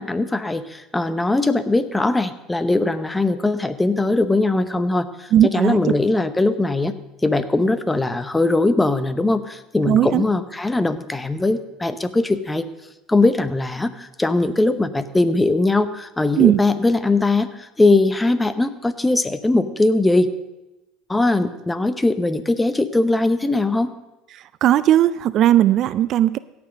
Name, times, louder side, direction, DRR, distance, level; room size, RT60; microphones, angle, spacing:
voice 1, 0.0-7.0 7.2-12.7 13.1-20.3 21.1-23.9, left 2 dB, 10° left, 12 dB, 0.8 m, -20 dB
voice 2, 5.3-5.8 9.9-10.2 16.4-16.6 24.6-26.4, right 12 dB, 55° right, 17 dB, 0.3 m, -16 dB
16.5 x 6.1 x 5.2 m, 1.0 s
hypercardioid pair, 85°, 0 cm